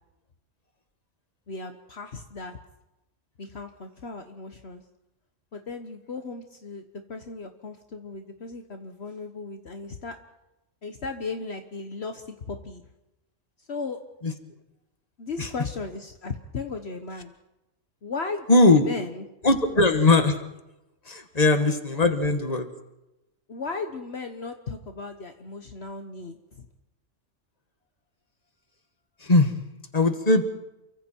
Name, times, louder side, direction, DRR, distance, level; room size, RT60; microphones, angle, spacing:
voice 1, 1.5-2.6 3.4-4.8 5.5-6.8 7.1-10.2 10.8-12.8 13.6-14.0 15.2-17.3 18.0-19.2 23.5-26.7, left 4 dB, 60° left, 5 dB, 1.5 m, -36 dB
voice 2, 18.5-18.9 19.4-20.4 21.1-22.7 29.2-29.5 29.9-30.4, left 2 dB, 30° left, 7 dB, 2.0 m, -20 dB
29.0 x 24.5 x 4.6 m, 0.95 s
omnidirectional pair, 1.3 m